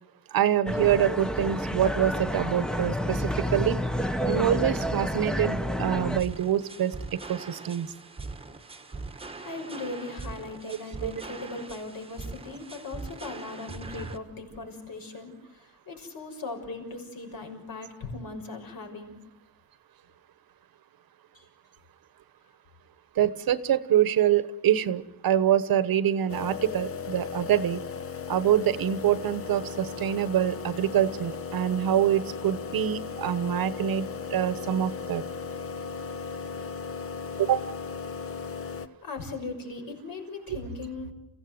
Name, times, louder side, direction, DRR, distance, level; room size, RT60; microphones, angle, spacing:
voice 1, 0.3-3.8 4.2-7.9 10.6-11.1 23.2-27.8 28.3-35.2 37.4-37.7 40.5-40.6, right 10 dB, 60° right, 15 dB, 1.2 m, -25 dB
sound 1, 0.7-6.2, equal, ahead, 0.9 m, -29 dB
sound 2, 6.2-14.2, right 3 dB, 15° right, 1.3 m, -41 dB
voice 2, 9.4-15.3 15.9-19.1 21.3-21.4 39.0-41.1, left 3 dB, 60° left, 3 dB, 6.3 m, -38 dB
sound 3, 26.3-38.9, left 5 dB, 35° left, 1.0 m, -37 dB
29.0 x 16.0 x 7.9 m, 1.0 s
cardioid pair, 140°, 39 cm